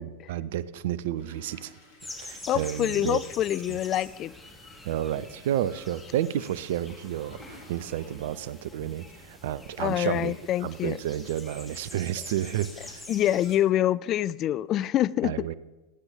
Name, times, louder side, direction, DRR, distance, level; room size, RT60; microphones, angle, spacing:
voice 1, 0.0-1.7 2.2-3.2 3.7-3.8 4.8-10.3 10.6-13.1 15.2-15.5, right 11 dB, 55° right, 18 dB, 0.5 m, -31 dB
Toilet flush, 1.1-9.2 9.7-9.8 9.9-10.0, left 1 dB, 60° left, 4.2 m, -56 dB
sound 1, 2.0-13.6, left 2 dB, 5° left, 2.7 m, -45 dB
voice 2, 2.5-4.3 9.8-11.0 13.1-15.5, left 12 dB, 35° left, 18 dB, 0.3 m, -26 dB
21.0 x 9.7 x 3.7 m, 1.1 s
figure-of-eight pair, 90°, 0 cm